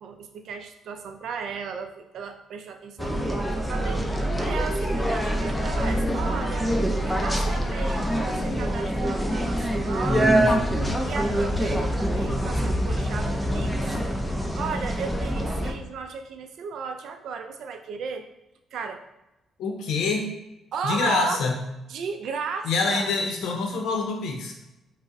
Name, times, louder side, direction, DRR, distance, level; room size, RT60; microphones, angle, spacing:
voice 1, 0.0-6.7 7.0-13.7 14.5-18.3 18.7-19.0 20.7-21.5 21.9-23.2, right 5 dB, 75° right, 6 dB, 0.4 m, -35 dB
sound 1, 3.0-15.7, equal, 5° left, 0.4 m, -25 dB
voice 2, 19.6-20.3 20.8-21.6 22.6-24.6, left 4 dB, 80° left, 2 dB, 0.6 m, -26 dB
5.0 x 2.0 x 2.5 m, 0.91 s
cardioid pair, 90°, 0 cm